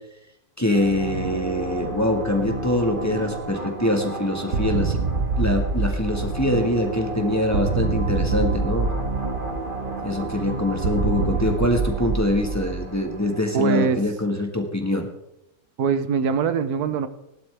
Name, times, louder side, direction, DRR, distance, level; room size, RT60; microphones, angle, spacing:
voice 1, 0.6-5.0 5.4-8.9 10.0-15.1, left 1 dB, 10° left, 2 dB, 1.5 m, -24 dB
sound 1, 0.7-14.0, right 2 dB, 35° right, 1.9 m, -33 dB
sound 2, 4.5-6.8 7.5-9.8 10.8-13.1, right 4 dB, 50° right, 1.3 m, -25 dB
voice 2, 13.5-14.0 15.8-17.1, right 6 dB, 80° right, 12 dB, 1.3 m, -22 dB
18.0 x 11.5 x 3.4 m, 0.83 s
omnidirectional pair, 1.6 m